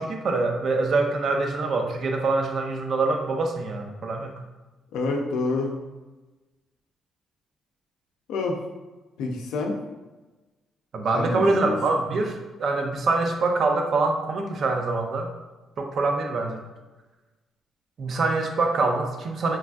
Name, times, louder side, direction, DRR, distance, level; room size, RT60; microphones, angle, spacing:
voice 1, 0.0-4.4 10.9-15.3 15.8-16.6 18.0-19.6, right 3 dB, 55° right, 4 dB, 0.4 m, -25 dB
voice 2, 4.9-5.7 8.3-8.6 9.2-9.8 11.1-11.8, left 3 dB, 90° left, 1 dB, 0.4 m, -27 dB
3.2 x 2.5 x 2.2 m, 1.2 s
cardioid pair, 90°, 0 cm